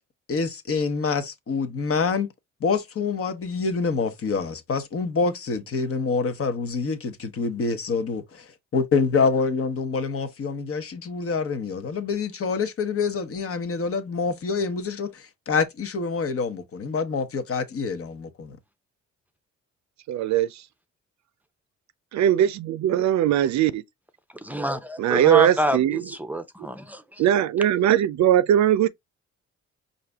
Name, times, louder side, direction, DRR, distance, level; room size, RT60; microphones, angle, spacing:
voice 1, 0.3-2.3 2.6-8.4 8.7-18.6, left 4 dB, 50° left, 1.1 m, -26 dB
voice 2, 20.1-20.5 22.1-23.8 25.0-26.0 27.2-28.9, right 11 dB, 65° right, 0.5 m, -20 dB
voice 3, 24.4-27.2, right 1 dB, 5° right, 0.7 m, -27 dB
4.9 x 2.7 x 3.4 m
cardioid pair, 90°, 30 cm